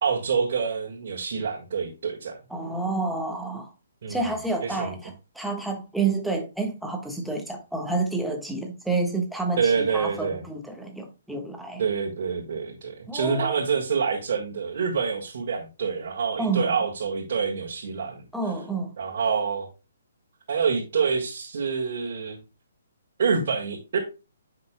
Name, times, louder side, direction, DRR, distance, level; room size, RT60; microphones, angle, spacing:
voice 1, 0.0-2.4 4.0-4.2 4.6-5.0 9.6-10.4 11.8-18.2 19.0-19.7 20.5-22.4 23.2-24.0, right 5 dB, 55° right, 1.8 m, -26 dB
voice 2, 2.5-3.7 4.1-11.8 13.1-13.6 16.4-16.7 18.3-18.9, right 3 dB, ahead, 1.4 m, -29 dB
9.8 x 5.8 x 2.2 m
figure-of-eight pair, 135°, 0 cm